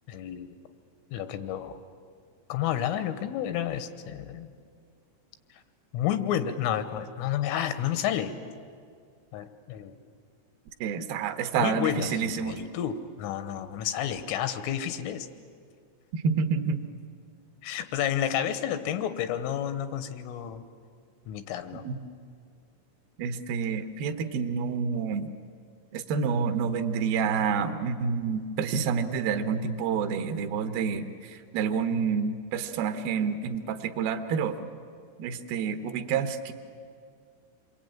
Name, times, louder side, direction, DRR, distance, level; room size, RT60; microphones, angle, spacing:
voice 1, 0.1-0.6 1.1-1.7 2.5-4.5 5.9-8.4 9.3-9.9 11.6-15.3 17.6-20.6 21.3-21.8, left 10 dB, 85° left, 10 dB, 3.6 m, -30 dB
voice 2, 10.8-12.6 16.1-16.9 21.8-21.9 23.2-25.3 25.9-34.6 35.2-36.5, right 6 dB, 70° right, 8 dB, 2.3 m, -28 dB
27.5 x 22.5 x 9.0 m, 2.2 s
omnidirectional pair, 5.7 m